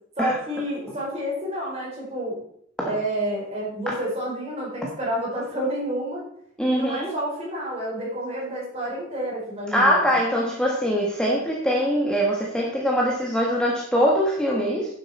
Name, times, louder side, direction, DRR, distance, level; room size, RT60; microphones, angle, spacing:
voice 1, 0.2-2.4 2.8-6.2 6.7-10.1, right 1 dB, 30° right, -4 dB, 4.5 m, -29 dB
voice 2, 6.6-7.1 9.7-14.9, equal, 5° left, -3 dB, 1.4 m, -22 dB
10.0 x 7.7 x 4.3 m, 0.67 s
head